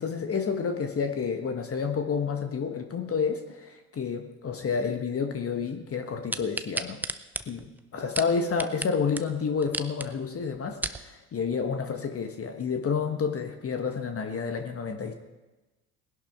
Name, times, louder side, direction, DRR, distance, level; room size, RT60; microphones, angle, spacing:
voice 1, 0.0-7.0 7.4-15.1, left 5 dB, 30° left, 6 dB, 1.4 m, -30 dB
sound 1, 6.3-8.9 9.2-9.3 9.6-10.1 10.5-11.0 11.6-11.7, right 2 dB, 5° right, 0.5 m, -33 dB
19.0 x 11.0 x 3.7 m, 1.1 s
hypercardioid pair, 70°, 45 cm